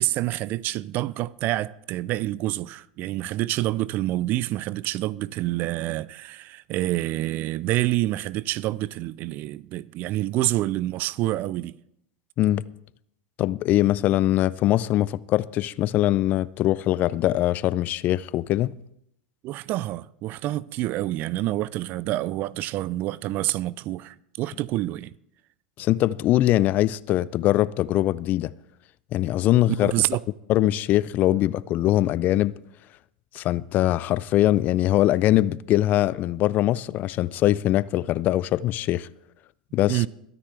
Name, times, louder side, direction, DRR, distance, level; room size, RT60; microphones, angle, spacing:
voice 1, 0.0-11.7 19.4-25.1 29.7-30.2 39.9-40.1, right 16 dB, 45° right, 0.5 m, -27 dB
voice 2, 13.4-18.7 25.8-28.5 29.1-29.9 30.5-32.6 33.3-39.1 39.7-40.0, left 14 dB, 40° left, 0.4 m, -22 dB
22.5 x 9.9 x 3.4 m
hypercardioid pair, 95°, 5 cm